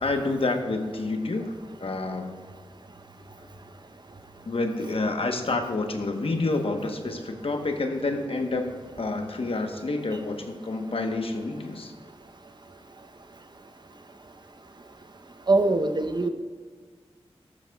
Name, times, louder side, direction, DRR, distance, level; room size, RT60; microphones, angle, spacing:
voice 1, 0.0-2.3 4.5-8.7 9.0-11.9, left 2 dB, 65° left, 5 dB, 1.1 m, -28 dB
voice 2, 15.5-16.3, right 2 dB, 45° right, 7 dB, 0.8 m, -22 dB
13.5 x 11.0 x 2.3 m, 1.5 s
wide cardioid pair, 55°, 10 cm